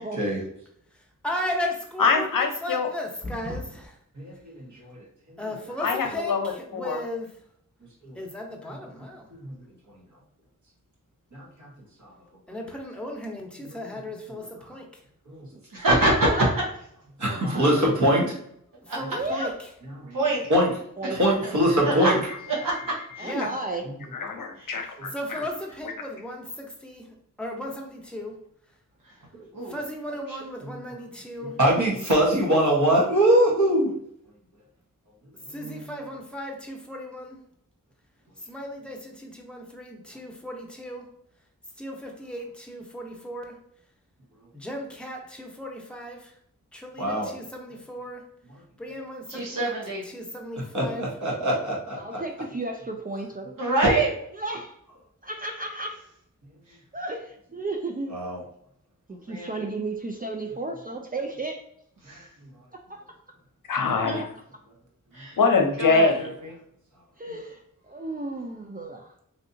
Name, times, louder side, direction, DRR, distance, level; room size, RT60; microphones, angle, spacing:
voice 1, 0.9-4.0 5.4-7.3 8.1-9.3 12.5-14.8 18.8-19.7 23.2-23.5 24.8-27.1 27.4-28.4 29.7-31.6 35.5-37.4 38.4-41.1 41.8-43.6 44.5-46.3 46.7-48.2 48.8-49.7 50.0-51.1, left 1 dB, 5° left, 1 dB, 0.8 m, -36 dB
voice 2, 2.0-2.9 5.8-7.0 24.1-25.1 63.7-64.3 65.4-66.2, left 4 dB, 70° left, 4 dB, 0.7 m, -23 dB
voice 3, 4.2-5.0 8.0-8.1 9.4-9.5 11.3-11.7 17.2-18.3 20.0-20.1 20.5-20.7 21.2-22.2 25.0-25.1 31.6-33.9 47.0-47.3 50.7-52.2 58.1-58.4, right 1 dB, 60° right, -3 dB, 1.3 m, -22 dB
voice 4, 15.7-16.3 18.9-19.0 19.3-19.4 20.1-20.4 21.8-22.1 22.5-22.7 23.1-23.3 24.6-24.7 29.5-29.8 30.3-30.4 49.3-50.0 53.6-54.1 59.3-59.6 62.0-62.3 64.0-64.2 65.1-65.4 65.8-66.5, right 2 dB, 75° right, -4 dB, 1.0 m, -25 dB
voice 5, 17.2-17.7 19.1-19.5 21.0-21.2 21.8-22.1 23.2-23.8 35.4-36.2 52.0-53.6 54.4-54.8 55.2-56.0 56.9-58.2 59.1-61.6 62.7-63.2 67.2-69.1, right 2 dB, 25° right, 2 dB, 0.4 m, -34 dB
3.2 x 2.7 x 2.7 m, 0.70 s
cardioid pair, 50°, 33 cm